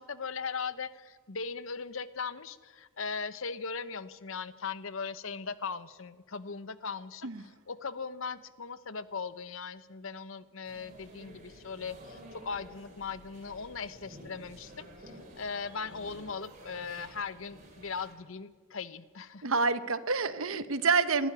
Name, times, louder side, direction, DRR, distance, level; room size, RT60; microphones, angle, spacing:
voice 1, 0.0-7.3 7.7-19.5, left 5 dB, 65° left, 15 dB, 0.9 m, -39 dB
sound 1, 10.7-18.1, equal, 35° right, 4.4 m, -51 dB
voice 2, 19.4-21.3, right 4 dB, 70° right, 13 dB, 1.0 m, -28 dB
21.0 x 12.5 x 10.0 m, 1.5 s
head